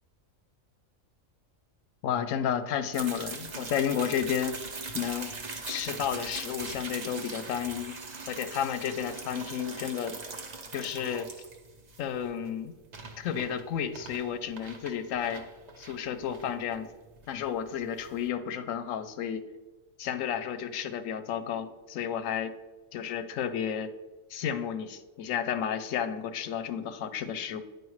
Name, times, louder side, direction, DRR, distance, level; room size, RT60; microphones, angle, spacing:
voice 1, 2.0-4.6 4.9-5.3 5.7-8.0 8.3-10.2 10.7-11.3 12.0-12.7 13.2-15.4 15.8-16.9 17.3-19.4 20.0-22.5 22.9-23.9 24.3-27.6, left 8 dB, 75° left, 11 dB, 0.9 m, -32 dB
sound 1, 2.9-18.3, right 3 dB, 40° right, 0.7 m, -41 dB
9.6 x 4.8 x 3.1 m, 1.2 s
omnidirectional pair, 1.4 m